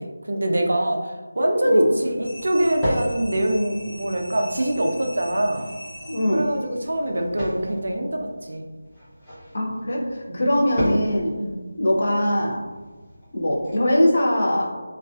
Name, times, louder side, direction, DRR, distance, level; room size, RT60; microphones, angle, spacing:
voice 1, 0.0-5.6 6.3-8.7 10.3-10.4 11.4-11.6, right 1 dB, 70° right, 2 dB, 0.4 m, -24 dB
sound 1, 1.4-13.8, equal, 10° left, 0.6 m, -35 dB
voice 2, 1.6-2.0 6.1-6.4 9.5-11.3 11.8-12.6 13.3-14.7, left 1 dB, 50° left, -2 dB, 0.5 m, -22 dB
sound 2, 2.2-6.7, equal, 65° left, 0.9 m, -41 dB
2.4 x 2.3 x 2.3 m, 1.3 s
figure-of-eight pair, 175°, 0 cm